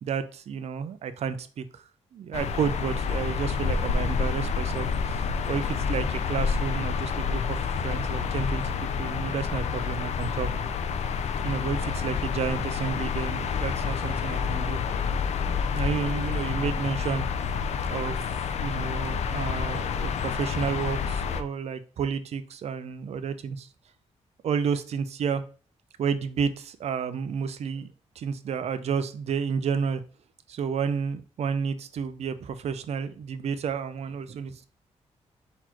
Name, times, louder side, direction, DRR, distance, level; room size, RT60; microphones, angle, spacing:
voice 1, 0.0-1.8 2.1-7.6 7.8-10.5 11.4-14.8 15.7-17.3 17.9-18.2 18.6-23.7 24.4-25.4 26.0-27.9 28.2-30.0 30.5-34.6, right 6 dB, 65° right, 12 dB, 0.5 m, -31 dB
sound 1, 2.3-21.4, left 6 dB, 70° left, 0.4 m, -28 dB
4.2 x 2.9 x 4.3 m, 0.39 s
cardioid pair, 115°, 12 cm